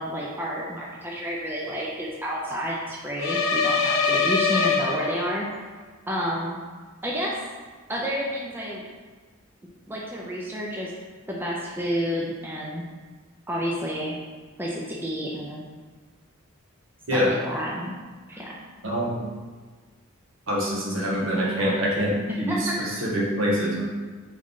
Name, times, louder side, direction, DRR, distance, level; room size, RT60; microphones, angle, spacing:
voice 1, 0.0-5.5 6.1-6.6 7.0-7.4 7.9-8.8 9.9-10.9 11.3-12.8 13.5-14.1 14.6-15.6 17.1-18.0 18.3-18.5 22.5-22.8, equal, 10° right, -4 dB, 0.4 m, -30 dB
sound 1, 3.2-5.6, left 4 dB, 75° left, 0.4 m, -23 dB
voice 2, 18.8-19.3 20.5-23.9, equal, 75° right, -5 dB, 1.0 m, -25 dB
3.7 x 3.2 x 3.6 m, 1.4 s
head